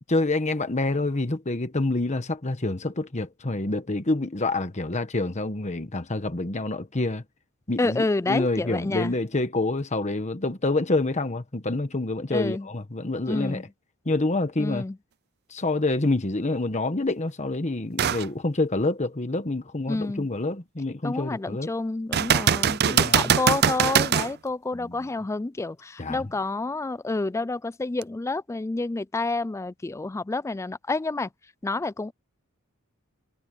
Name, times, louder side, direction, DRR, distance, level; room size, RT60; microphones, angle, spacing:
voice 1, 0.1-7.2 7.7-13.7 14.0-14.8 15.5-21.7 22.9-23.3 24.7-25.0 26.0-26.2, left 2 dB, 30° left, 1.2 m, -27 dB
voice 2, 7.8-9.1 12.3-12.7 13.3-13.6 14.6-15.0 19.9-20.3 21.0-31.3 31.6-32.1, left 3 dB, 15° left, 0.3 m, -29 dB
sound 1, 18.0-18.3 18.8-18.9 22.1-24.3 28.0-28.1, right 8 dB, 45° right, 0.5 m, -22 dB
head